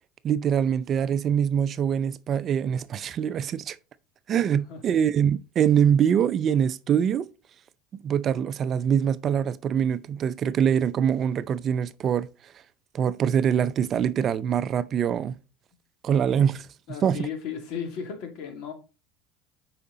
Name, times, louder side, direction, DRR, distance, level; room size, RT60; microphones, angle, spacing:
voice 1, 0.2-3.8 4.3-7.3 8.0-12.3 12.9-15.4 16.0-16.7 17.0-17.3, right 8 dB, 40° right, 0.5 m, -24 dB
voice 2, 16.9-18.7, left 7 dB, 65° left, 2.5 m, -35 dB
8.6 x 5.0 x 4.0 m
supercardioid pair, 110°, 0 cm